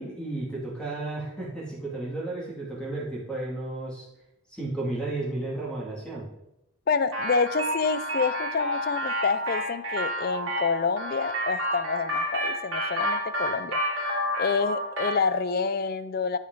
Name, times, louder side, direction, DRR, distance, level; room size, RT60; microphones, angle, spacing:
voice 1, 0.0-4.1 4.5-6.3, right 2 dB, 5° left, -5 dB, 2.2 m, -33 dB
voice 2, 6.9-13.8 14.4-16.4, left 5 dB, 45° left, 14 dB, 0.4 m, -28 dB
sound 1, 7.1-15.3, equal, 65° right, 2.4 m, -29 dB
8.4 x 8.2 x 3.8 m, 0.87 s
head